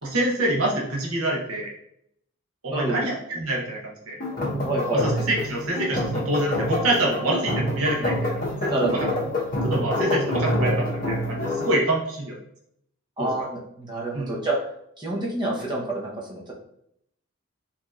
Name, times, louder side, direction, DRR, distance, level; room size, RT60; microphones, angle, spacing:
voice 1, 0.0-1.7 2.6-4.1 4.9-9.1 9.6-12.4 13.2-13.3 14.1-14.3, right 1 dB, 90° right, -2 dB, 1.0 m, -26 dB
voice 2, 2.7-3.0 4.7-5.0 8.7-9.0 13.2-14.6 15.0-16.5, right 2 dB, 20° right, -3 dB, 0.8 m, -27 dB
sound 1, 4.2-11.8, left 1 dB, 40° left, 1.0 m, -27 dB
4.6 x 2.7 x 2.4 m, 0.72 s
head